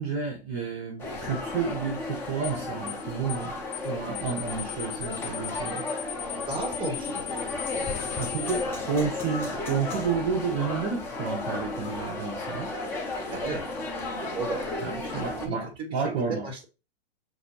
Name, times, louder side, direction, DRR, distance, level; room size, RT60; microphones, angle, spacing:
voice 1, 0.0-3.5 3.8-5.8 8.2-12.7 14.8-16.4, right 5 dB, 35° right, 0.9 m, -31 dB
sound 1, 1.0-15.5, left 2 dB, 10° left, 0.3 m, -34 dB
sound 2, 2.4-2.6 2.9-3.0 3.3-3.5 3.7-3.9 4.1-8.6, left 15 dB, 55° left, 1.2 m, -37 dB
voice 2, 6.5-7.4 7.8-8.1 13.3-13.6 14.1-14.7 15.1-16.0 16.3-16.6, right 3 dB, 15° right, 1.3 m, -35 dB
5.8 x 2.6 x 2.8 m
hypercardioid pair, 135°, 31 cm